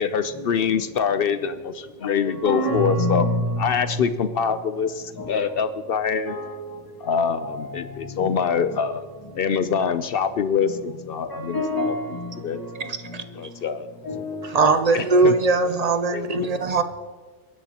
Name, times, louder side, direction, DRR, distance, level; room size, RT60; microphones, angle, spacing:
voice 1, 0.0-3.3 3.6-6.4 7.0-9.0 9.3-11.9 12.4-12.6 13.4-13.9 14.9-15.4 16.1-16.5, left 6 dB, 60° left, 0.6 m, -24 dB
voice 2, 2.0-4.0 5.2-5.5 6.2-6.9 7.4-7.8 8.1-8.9 11.3-12.9 14.0-14.7, left 1 dB, 15° left, 1.4 m, -28 dB
voice 3, 12.8-13.2 14.4-16.8, right 3 dB, 50° right, 0.4 m, -20 dB
22.0 x 10.5 x 2.9 m
omnidirectional pair, 1.4 m